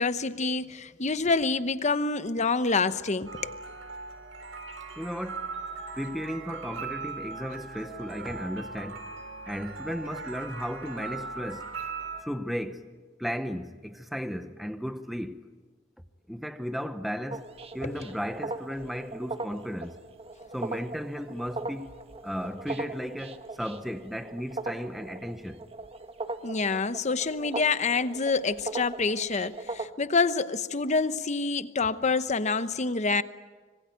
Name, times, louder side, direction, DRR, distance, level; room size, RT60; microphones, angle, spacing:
voice 1, 0.0-3.6 17.8-17.9 26.4-33.2, left 4 dB, 35° left, 0.9 m, -27 dB
sound 1, 3.3-12.2, right 4 dB, 85° right, 3.8 m, -39 dB
voice 2, 5.0-5.5 5.9-9.0 9.5-11.7 12.2-12.9 13.2-15.4 16.3-17.5 17.7-20.0 20.5-22.0 22.2-25.6, equal, ahead, 0.8 m, -35 dB
sound 2, 17.3-29.9, right 3 dB, 30° right, 1.3 m, -39 dB
25.5 x 22.0 x 9.3 m
head